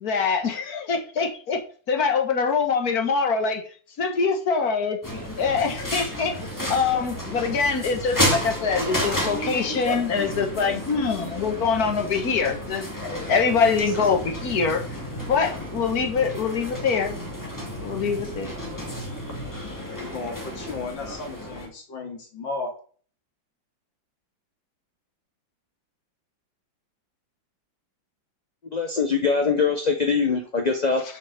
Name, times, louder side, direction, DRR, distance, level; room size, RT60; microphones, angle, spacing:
voice 1, 0.0-1.6 1.9-3.6 4.0-5.0 5.4-6.3 6.7-14.8 15.3-17.2 17.8-18.5, left 5 dB, 55° left, 5 dB, 1.6 m, -24 dB
sound 1, 5.0-21.7, equal, 10° left, 2.2 m, -31 dB
voice 2, 19.8-22.7, left 3 dB, 75° left, 3 dB, 2.7 m, -34 dB
voice 3, 28.7-31.0, left 5 dB, 35° left, 3 dB, 0.7 m, -22 dB
7.3 x 5.5 x 6.4 m, 0.43 s
omnidirectional pair, 2.1 m